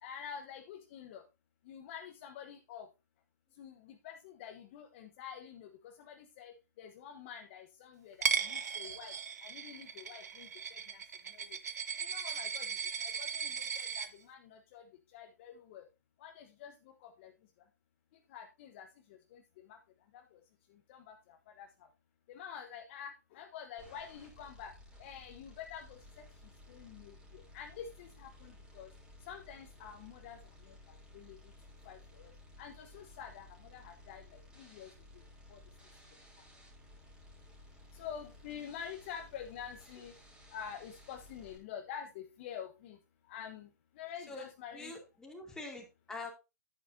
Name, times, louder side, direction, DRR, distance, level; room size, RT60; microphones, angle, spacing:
voice 1, 0.0-1.2 1.6-2.9 3.5-11.6 11.9-15.9 16.2-17.3 17.6-17.7 18.1-19.8 20.1-20.4 20.7-21.9 22.3-24.7 25.0-28.9 29.2-31.5 31.8-32.3 32.6-35.2 35.5-35.6 37.9-40.2 40.5-44.9, left 8 dB, 45° left, 6 dB, 1.0 m, -48 dB
Coin (dropping), 8.2-14.1, right 7 dB, 70° right, 1.0 m, -37 dB
sound 1, 23.8-41.6, left 1 dB, 10° right, 3.1 m, -57 dB
voice 2, 44.3-46.3, left 2 dB, 5° left, 1 dB, 2.5 m, -45 dB
10.0 x 8.5 x 2.6 m, 0.26 s
hypercardioid pair, 125°, 9 cm